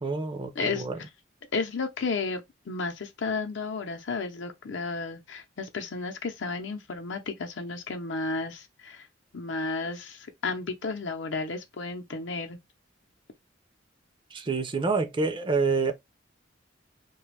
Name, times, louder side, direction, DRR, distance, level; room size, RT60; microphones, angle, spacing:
voice 1, 0.0-1.0 14.3-15.9, right 4 dB, 25° right, 0.4 m, -27 dB
voice 2, 0.5-0.9 1.5-9.1 9.3-12.6, left 4 dB, 70° left, 0.6 m, -33 dB
2.5 x 2.3 x 3.2 m
head